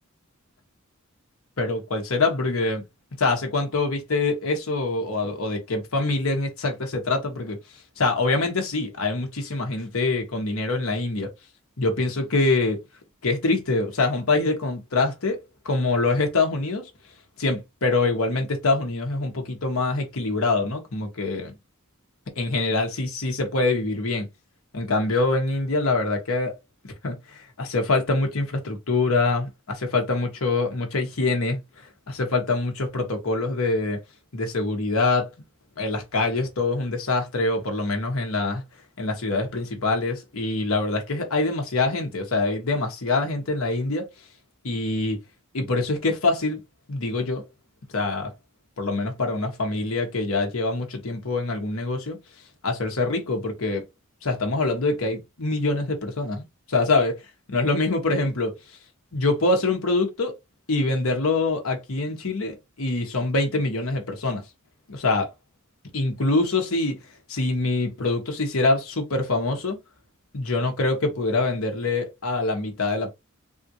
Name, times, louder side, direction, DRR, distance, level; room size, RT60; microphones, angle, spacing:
voice 1, 1.6-2.8 3.2-7.6 8.0-11.3 11.8-12.8 13.2-16.9 17.4-21.5 22.4-24.3 24.7-26.5 27.0-34.0 34.3-35.3 35.8-38.6 39.0-44.1 44.6-45.2 45.5-46.6 46.9-47.5 47.9-48.3 48.8-52.2 52.6-53.8 54.2-57.2 57.5-58.6 59.1-60.3 60.7-64.5 64.9-65.3 65.9-67.0 67.3-69.8 70.3-73.1, left 3 dB, 75° left, 1.0 m, -25 dB
3.6 x 2.4 x 2.8 m
head